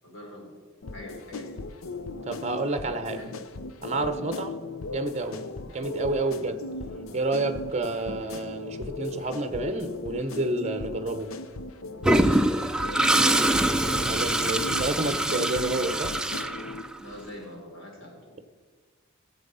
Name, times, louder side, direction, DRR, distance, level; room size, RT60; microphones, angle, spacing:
voice 1, 0.0-0.5 0.9-1.6 3.1-3.4 4.2-4.5 12.7-13.8 17.0-18.2, left 1 dB, 60° left, -1 dB, 4.0 m, -43 dB
sound 1, 0.8-16.8, left 2 dB, 75° left, 0.7 m, -38 dB
voice 2, 2.2-3.2 3.8-4.5 4.9-6.6 7.1-11.3 14.1-16.2, right 2 dB, 30° right, 10 dB, 0.9 m, -29 dB
Toilet flush, 12.0-17.1, right 1 dB, 5° right, 0.4 m, -24 dB
18.0 x 7.5 x 5.5 m, 1.5 s
head